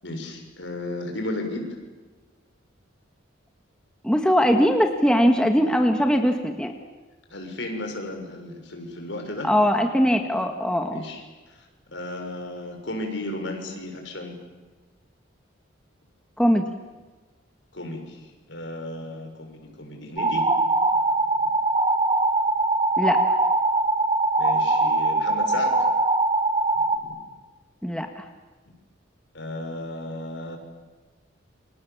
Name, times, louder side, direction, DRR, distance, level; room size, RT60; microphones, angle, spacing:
voice 1, 0.0-1.6 7.3-9.5 10.9-11.2 11.6-11.7 11.9-14.3 17.7-18.2 18.5-20.4 24.4-25.7 26.7-27.1 29.3-30.6, left 2 dB, 65° left, 3 dB, 6.7 m, -34 dB
voice 2, 4.0-6.7 9.4-11.0 16.4-16.7 23.0-23.4 27.8-28.3, equal, 5° left, 4 dB, 1.7 m, -21 dB
sound 1, 20.2-27.0, right 2 dB, 25° right, 1.9 m, -22 dB
29.5 x 25.5 x 7.4 m, 1.3 s
head